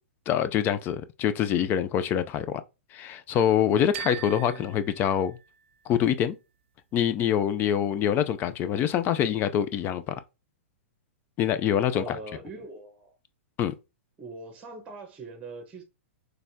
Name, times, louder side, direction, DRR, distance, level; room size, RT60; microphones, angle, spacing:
voice 1, 0.3-2.6 2.9-5.4 5.9-6.4 6.9-10.1 11.4-12.2 13.6-13.7, left 9 dB, 30° left, 0.5 m, -25 dB
sound 1, 3.9-5.9, right 12 dB, 60° right, 0.5 m, -41 dB
voice 2, 4.4-4.8 11.9-13.2 14.2-15.8, right 3 dB, 20° right, 1.2 m, -42 dB
4.1 x 3.3 x 2.8 m
hypercardioid pair, 120°, 7 cm